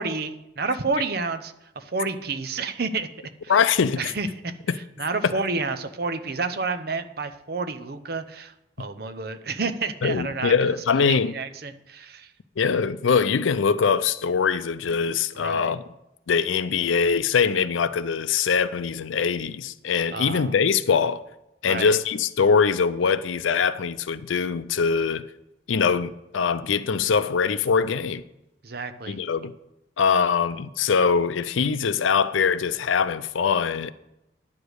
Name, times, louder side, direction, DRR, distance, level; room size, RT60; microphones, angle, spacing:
voice 1, 0.0-3.1 3.4-3.6 4.0-12.3 15.3-15.7 20.1-20.5 21.6-22.0 28.6-29.2, right 4 dB, 50° right, 0.7 m, -30 dB
voice 2, 3.5-4.1 5.2-5.3 10.0-11.3 12.6-15.8 16.3-21.2 21.6-25.3 25.7-28.2 29.1-29.5 30.0-33.9, left 6 dB, 85° left, 0.5 m, -22 dB
10.5 x 5.0 x 8.0 m
head